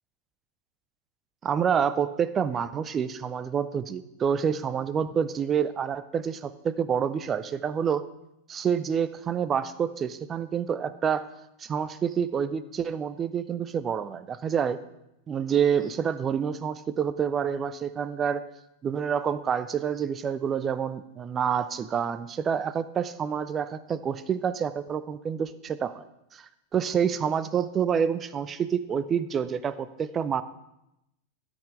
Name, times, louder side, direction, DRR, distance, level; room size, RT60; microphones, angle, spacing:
voice 1, 1.4-8.0 8.5-11.3 11.6-14.8 15.3-18.4 18.8-26.0 26.3-30.4, right 7 dB, 25° right, 15 dB, 0.5 m, -28 dB
13.0 x 5.7 x 5.0 m, 0.86 s
figure-of-eight pair, 90°, 0 cm